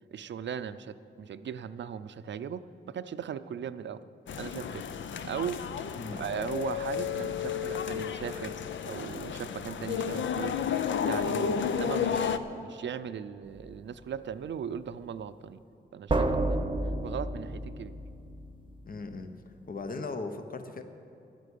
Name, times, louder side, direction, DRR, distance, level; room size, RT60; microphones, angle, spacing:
voice 1, 0.1-4.0 4.4-4.8 5.2-5.7 6.2-8.6 8.9-10.6 11.0-15.6 15.9-16.7 17.0-17.9, right 8 dB, 70° right, 13 dB, 0.5 m, -38 dB
sound 1, 4.3-12.4, left 7 dB, 80° left, 0.6 m, -32 dB
sound 2, 13.5-13.7 16.1-18.7, right 2 dB, 25° right, 0.9 m, -31 dB
voice 2, 18.9-19.4 19.7-20.8, left 3 dB, 50° left, 8 dB, 0.9 m, -38 dB
11.0 x 9.2 x 8.4 m, 2.7 s
cardioid pair, 60°, 19 cm